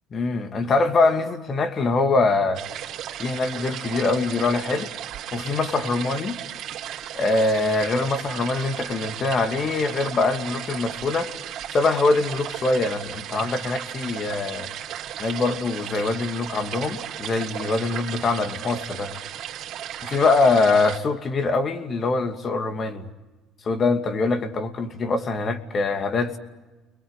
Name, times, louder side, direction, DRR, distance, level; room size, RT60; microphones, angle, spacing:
voice 1, 0.1-2.6 3.2-4.9 5.3-6.4 7.1-11.3 11.7-14.7 15.2-19.2 20.0-23.1 23.6-26.4, left 3 dB, 40° left, 2.6 m, -23 dB
sound 1, 2.5-21.0, right 10 dB, 60° right, 3.6 m, -35 dB
30.0 x 22.0 x 8.2 m
supercardioid pair, 85°, 0 cm